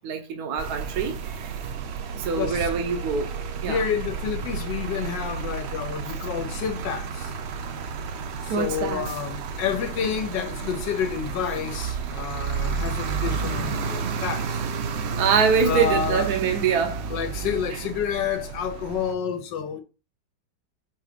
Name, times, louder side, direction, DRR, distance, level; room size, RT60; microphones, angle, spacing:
voice 1, 0.0-1.5 2.1-3.3 3.6-3.8 8.5-9.1 15.2-17.0, right 6 dB, 65° right, 1.3 m, -24 dB
sound 1, 0.6-19.1, right 6 dB, 80° right, 0.5 m, -31 dB
voice 2, 2.4-2.7 3.7-7.3 8.4-14.6 15.6-16.3 17.1-19.8, left 7 dB, 85° left, 1.4 m, -29 dB
4.9 x 3.8 x 5.0 m
omnidirectional pair, 1.9 m